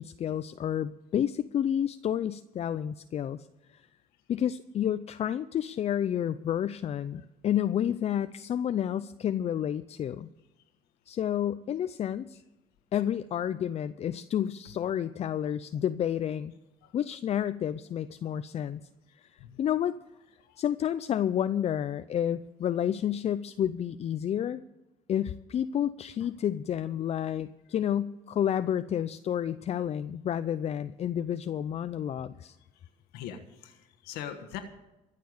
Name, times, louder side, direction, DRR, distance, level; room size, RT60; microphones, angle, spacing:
voice 1, 0.0-3.5 3.7-3.8 4.3-10.3 11.1-12.4 12.9-16.5 16.9-18.8 19.2-20.0 20.6-24.6 25.1-32.6, left 10 dB, 45° left, 12 dB, 0.5 m, -30 dB
voice 2, 33.1-34.6, left 10 dB, 85° left, 5 dB, 1.3 m, -42 dB
14.5 x 6.7 x 9.4 m, 1.0 s
cardioid pair, 95°, 16 cm